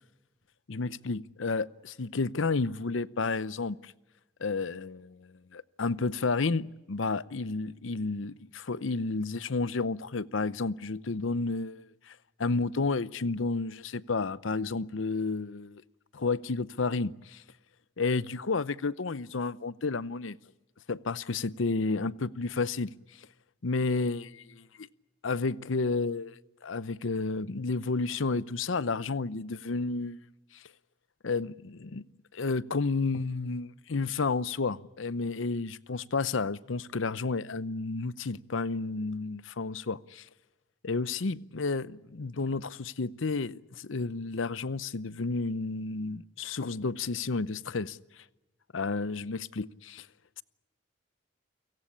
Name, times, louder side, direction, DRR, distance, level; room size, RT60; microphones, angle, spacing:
voice 1, 0.7-3.9 4.4-12.1 12.4-15.8 16.1-17.4 18.0-20.4 20.9-22.9 23.6-24.9 25.2-26.4 26.6-30.3 30.5-30.6 31.2-32.0 32.3-40.3 40.8-48.0 48.7-50.1, left 3 dB, 85° left, 0.7 m, -31 dB
29.5 x 17.5 x 8.5 m
head